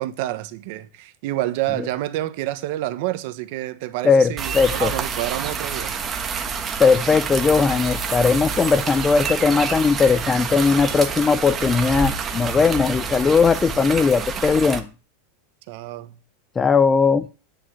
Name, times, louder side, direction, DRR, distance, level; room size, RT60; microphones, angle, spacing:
voice 1, 0.0-5.9 15.7-16.1, right 15 dB, 55° right, 1.2 m, -28 dB
voice 2, 4.0-4.9 6.8-14.9 16.6-17.3, left 5 dB, 15° left, 0.4 m, -18 dB
sound 1, 4.4-14.8, right 5 dB, 20° right, 1.3 m, -28 dB
10.5 x 5.5 x 8.1 m
supercardioid pair, 155°, 0 cm